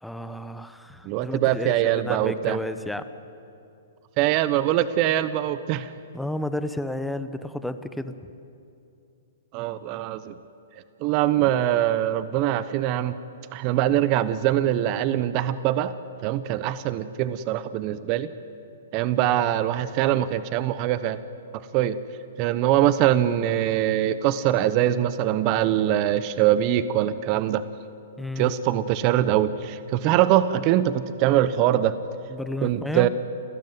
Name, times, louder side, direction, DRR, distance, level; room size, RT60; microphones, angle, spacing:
voice 1, 0.0-3.1 6.1-8.3 11.4-11.5 28.2-28.6 32.3-33.1, left 1 dB, ahead, 10 dB, 1.0 m, -32 dB
voice 2, 1.1-2.6 4.2-5.9 9.5-10.3 11.0-13.1 13.5-15.9 16.2-18.3 18.9-21.2 21.7-22.0 22.4-27.6 28.4-32.0 32.6-33.1, right 12 dB, 40° right, 14 dB, 0.9 m, -23 dB
29.0 x 13.0 x 9.3 m, 2.6 s
hypercardioid pair, 130°, 0 cm